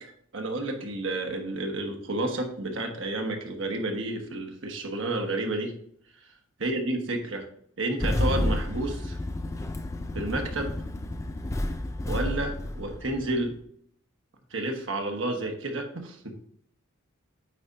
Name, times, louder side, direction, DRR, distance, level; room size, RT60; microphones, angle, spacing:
voice 1, 0.3-5.7 6.6-7.5 7.8-9.2 10.1-10.7 12.1-13.6 14.5-16.3, right 2 dB, 65° right, 3 dB, 1.2 m, -30 dB
Engine starting, 8.0-13.5, left 1 dB, 15° left, 0.3 m, -30 dB
8.8 x 4.3 x 2.5 m, 0.64 s
head